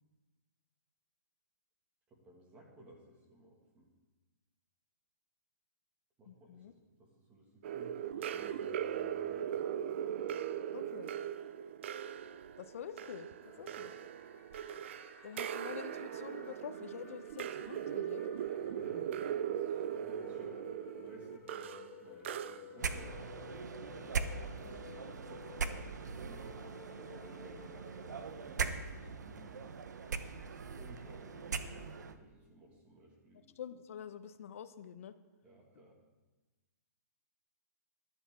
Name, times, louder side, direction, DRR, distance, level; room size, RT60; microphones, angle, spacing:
voice 1, 2.1-3.9 6.2-6.7 7.0-9.6 13.6-13.7 18.6-25.3 26.1-30.1 30.5-33.5 35.4-36.0, right 1 dB, 15° right, 0 dB, 2.0 m, -57 dB
voice 2, 6.3-6.7 10.7-11.1 12.6-13.3 13.6-13.9 15.2-18.2 18.9-19.0 33.6-35.1, left 8 dB, 55° left, 11 dB, 0.8 m, -47 dB
sound 1, 7.6-23.0, right 9 dB, 45° right, 0.4 m, -39 dB
sound 2, 13.4-28.7, left 7 dB, 20° left, 1.4 m, -56 dB
sound 3, 22.8-32.2, right 5 dB, 90° right, 0.9 m, -40 dB
14.0 x 11.0 x 3.7 m, 1.2 s
hypercardioid pair, 165°, 9 cm